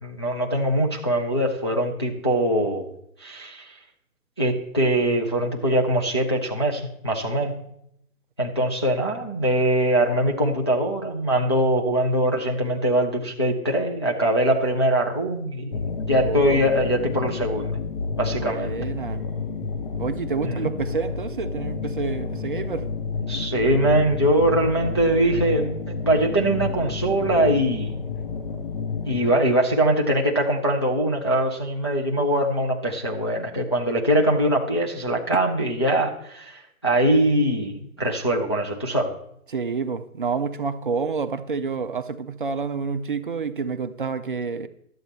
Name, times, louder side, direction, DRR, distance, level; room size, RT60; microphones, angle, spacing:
voice 1, 0.0-2.9 3.2-3.7 4.4-7.6 8.4-17.8 18.2-18.7 20.4-20.7 23.3-28.0 29.1-39.1, right 1 dB, 20° left, 0.4 m, -22 dB
sound 1, 15.7-29.3, left 4 dB, 35° left, 1.0 m, -30 dB
voice 2, 16.2-16.6 18.4-19.2 20.0-22.9 35.3-35.4 39.5-44.7, right 5 dB, 40° right, 0.4 m, -28 dB
12.0 x 7.7 x 4.1 m
figure-of-eight pair, 145°, 44 cm